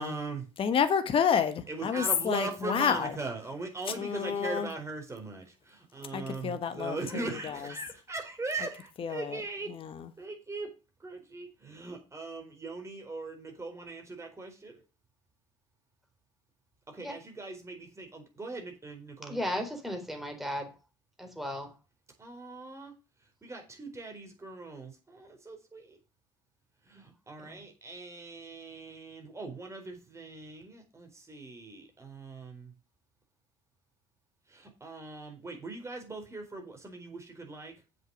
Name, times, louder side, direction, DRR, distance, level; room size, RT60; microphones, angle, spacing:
voice 1, 0.0-0.4 1.7-9.7 10.2-10.7 11.0-14.8 16.9-19.4 22.2-22.9 23.4-26.0 26.9-32.7 34.5-37.7, right 3 dB, 20° right, 4.2 m, -40 dB
voice 2, 0.6-3.1 3.9-4.7 6.1-7.7 9.0-9.4 9.7-10.1, left 7 dB, 40° left, 1.3 m, -29 dB
voice 3, 19.3-20.7 21.2-21.7 26.9-27.0 27.5-27.6, left 1 dB, ahead, 3.8 m, -35 dB
7.7 x 6.3 x 6.2 m
hypercardioid pair, 70°, 15 cm